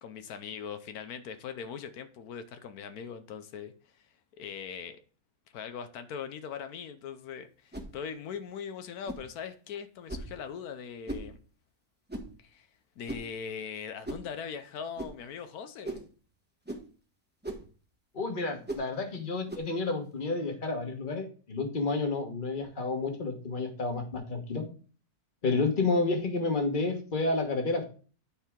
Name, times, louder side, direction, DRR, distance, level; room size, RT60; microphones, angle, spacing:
voice 1, 0.0-3.7 4.4-5.0 5.5-11.4 12.4-12.7 13.0-16.1, left 7 dB, 85° left, 1.2 m, -40 dB
sound 1, 7.7-7.9 9.1-9.3 10.1-10.3 11.1-11.3 12.1-12.3 13.1-13.3 14.0-14.3 15.0-15.1 15.8-16.1 16.6-16.9 17.4-17.7 18.7-18.9 19.5-19.7, right 1 dB, 10° right, 1.0 m, -38 dB
voice 2, 18.1-24.6 25.4-27.9, left 3 dB, 35° left, 1.5 m, -30 dB
10.5 x 4.6 x 3.6 m
omnidirectional pair, 1.5 m